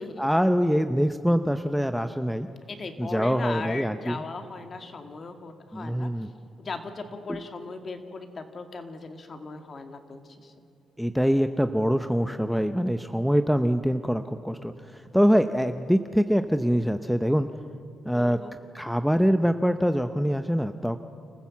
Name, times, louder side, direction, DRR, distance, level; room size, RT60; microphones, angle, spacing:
voice 1, 0.2-2.5 3.0-4.2 5.7-6.3 7.3-7.4 11.0-17.5 18.1-18.4 18.7-21.0, equal, ahead, 9 dB, 0.7 m, -24 dB
voice 2, 2.7-6.1 6.6-10.5 18.1-18.6, left 3 dB, 40° left, 6 dB, 2.1 m, -38 dB
29.0 x 15.0 x 7.3 m, 2.5 s
cardioid pair, 90°, 0 cm